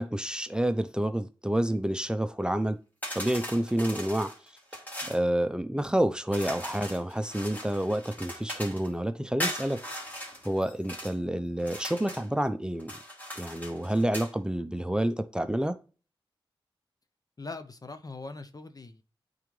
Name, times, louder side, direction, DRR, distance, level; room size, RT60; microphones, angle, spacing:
voice 1, 0.0-2.8 3.1-4.3 5.0-9.8 10.4-12.9 13.4-15.8, right 1 dB, 10° right, 0.7 m, -29 dB
sound 1, 3.0-5.2 6.3-8.9 9.4-11.1 11.6-12.3 12.8-14.3, equal, 20° left, 3.0 m, -39 dB
voice 2, 17.4-19.0, left 3 dB, 40° left, 0.9 m, -41 dB
8.9 x 3.9 x 3.2 m
cardioid pair, 50°, 10 cm